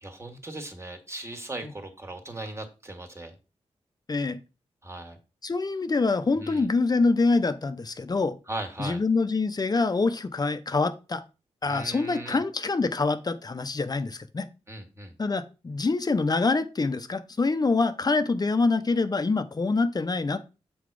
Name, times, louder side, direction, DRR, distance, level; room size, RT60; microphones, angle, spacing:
voice 1, 0.0-3.3 4.8-5.2 6.3-6.7 8.5-9.0 11.7-12.4 14.7-15.1, right 2 dB, 25° right, 5 dB, 1.9 m, -38 dB
voice 2, 5.4-8.4 8.8-11.2 11.6-14.5 15.2-20.4, left 3 dB, 35° left, 10 dB, 0.8 m, -25 dB
7.9 x 4.0 x 4.8 m, 0.30 s
cardioid pair, 80°, 11 cm